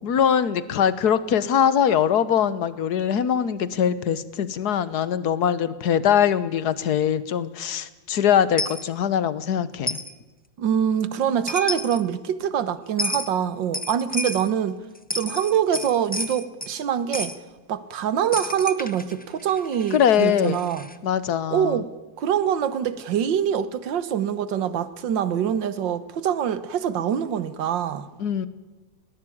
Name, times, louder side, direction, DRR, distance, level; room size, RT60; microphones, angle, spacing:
voice 1, 0.0-10.0 19.9-20.6 21.0-21.8 28.2-28.5, left 8 dB, 60° left, 1.5 m, -22 dB
Coin (dropping), 8.6-8.8 9.9-10.1 11.2-11.3 11.5-12.0 13.0-13.3 13.7-14.5 15.0-16.8 17.1-17.4 18.3-21.0, left 2 dB, 10° left, 0.5 m, -31 dB
voice 2, 10.6-14.8 15.1-17.3 17.7-20.9 21.5-21.9 22.2-28.1, right 9 dB, 75° right, 1.8 m, -24 dB
20.5 x 18.5 x 8.6 m
omnidirectional pair, 2.0 m